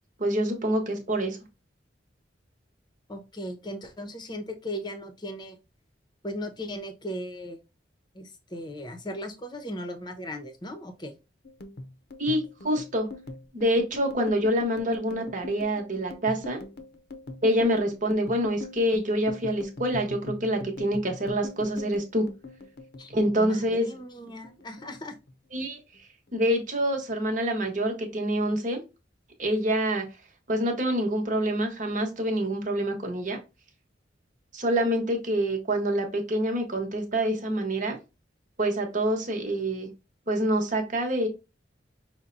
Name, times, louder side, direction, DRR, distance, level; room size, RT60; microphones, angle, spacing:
voice 1, 0.2-1.4 12.2-13.1 13.5-16.6 17.4-22.3 23.1-23.9 25.5-25.8 26.3-28.8 29.4-30.0 30.5-33.4 34.5-38.0 38.6-39.9 40.3-41.3, equal, 45° right, 3 dB, 1.2 m, -26 dB
voice 2, 3.1-5.6 6.2-7.6 8.1-11.1 23.0-23.1 23.4-25.1, equal, 25° left, 7 dB, 0.8 m, -37 dB
sound 1, 11.4-24.0 24.3-25.3 25.6-26.0 26.3-27.0, left 2 dB, 60° left, 0.7 m, -42 dB
5.7 x 2.2 x 3.8 m, 0.28 s
head